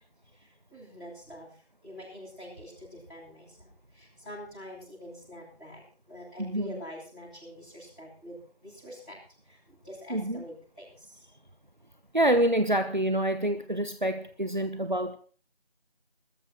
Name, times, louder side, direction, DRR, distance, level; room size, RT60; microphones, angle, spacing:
voice 1, 0.3-11.2, equal, ahead, -28 dB, 6.0 m, -46 dB
voice 2, 6.4-6.7 10.1-10.4 12.1-15.2, right 1 dB, 45° right, 10 dB, 1.1 m, -27 dB
22.5 x 14.0 x 4.6 m, 0.40 s
figure-of-eight pair, 175°, 32 cm